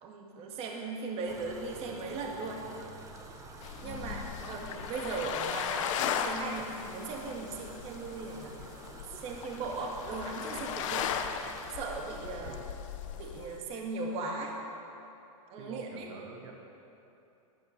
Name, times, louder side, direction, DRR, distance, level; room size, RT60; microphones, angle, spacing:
voice 1, 0.0-2.6 3.8-8.5 9.1-11.1 11.7-12.6 13.1-14.6 15.5-16.1, right 3 dB, 35° right, 0 dB, 2.1 m, -38 dB
sound 1, 1.3-11.7, right 3 dB, 15° right, 1.4 m, -49 dB
sound 2, 3.6-13.6, left 8 dB, 60° left, 1.1 m, -37 dB
voice 2, 3.7-4.4 12.4-12.6 15.6-16.5, right 4 dB, 60° right, 2 dB, 2.0 m, -47 dB
14.5 x 12.0 x 6.8 m, 2.8 s
hypercardioid pair, 140°, 19 cm